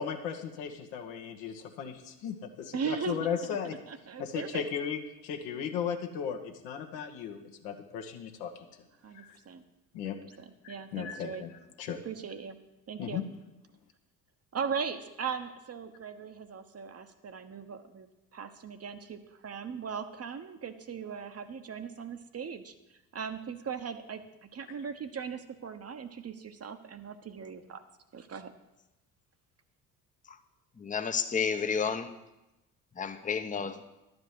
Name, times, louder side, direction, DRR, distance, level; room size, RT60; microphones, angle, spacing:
voice 1, 0.0-3.8 4.2-8.7 9.1-9.4 9.9-10.2 10.6-12.0 13.0-13.2, left 7 dB, 70° left, 4 dB, 1.3 m, -36 dB
voice 2, 2.7-3.3 3.9-4.6 9.0-9.6 10.0-11.4 12.0-12.6 12.9-13.2 14.5-18.1 18.3-27.8 28.1-28.5, right 6 dB, 30° right, 9 dB, 1.0 m, -39 dB
voice 3, 30.8-32.1 32.9-33.8, left 6 dB, 15° left, 9 dB, 0.8 m, -31 dB
11.0 x 5.3 x 8.1 m, 0.96 s
hypercardioid pair, 55°, 46 cm